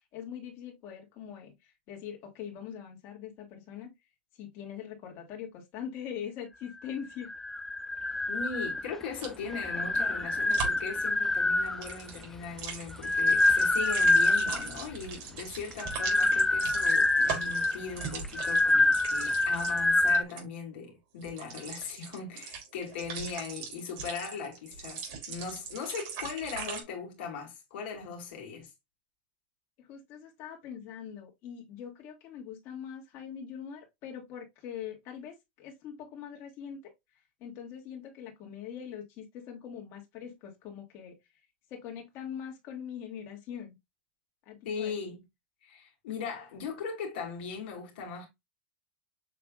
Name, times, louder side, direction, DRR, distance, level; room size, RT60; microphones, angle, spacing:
voice 1, 0.1-3.9 4.3-7.3 29.8-36.9 37.4-41.2 41.7-43.8 44.5-44.9, left 8 dB, 50° left, 2.0 m, -42 dB
sound 1, 7.2-9.0 9.5-11.9 12.7-14.8 15.7-20.2, left 2 dB, 5° left, 0.4 m, -26 dB
voice 2, 8.3-28.7 44.7-45.2 45.6-48.3, left 5 dB, 70° left, 2.0 m, -39 dB
sound 2, 9.1-9.4 10.5-10.9 11.7-20.4 21.2-26.8, right 6 dB, 60° right, 3.3 m, -40 dB
6.7 x 3.4 x 2.3 m
hypercardioid pair, 115°, 6 cm